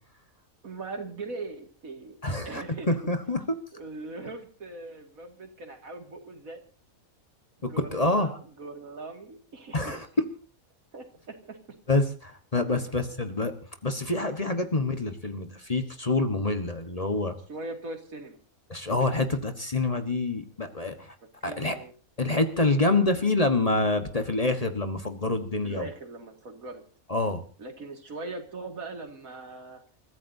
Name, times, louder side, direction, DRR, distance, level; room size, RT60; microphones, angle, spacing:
voice 1, 0.6-2.2 2.4-2.9 3.7-6.6 7.6-10.0 10.9-11.8 12.7-12.8 17.5-18.4 21.4-21.9 25.6-26.8 27.6-29.8, right 3 dB, 75° right, 4 dB, 2.8 m, -40 dB
voice 2, 2.2-3.4 7.6-8.3 9.7-10.1 11.9-13.5 13.8-17.3 18.7-21.1 21.4-21.8 22.2-25.9 27.1-27.4, left 2 dB, 25° left, 7 dB, 1.4 m, -27 dB
29.5 x 14.5 x 2.8 m, 0.38 s
omnidirectional pair, 1.5 m